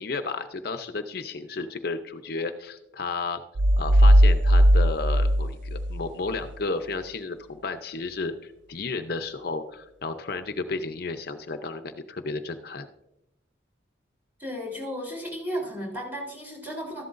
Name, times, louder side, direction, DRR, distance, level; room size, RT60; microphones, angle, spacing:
voice 1, 0.0-3.4 3.8-12.9, left 3 dB, 55° left, 8 dB, 0.6 m, -33 dB
sound 1, 3.6-6.5, equal, 85° right, 0.5 m, -18 dB
voice 2, 14.4-17.0, equal, 10° right, -3 dB, 3.4 m, -34 dB
14.0 x 11.5 x 2.5 m, 0.86 s
head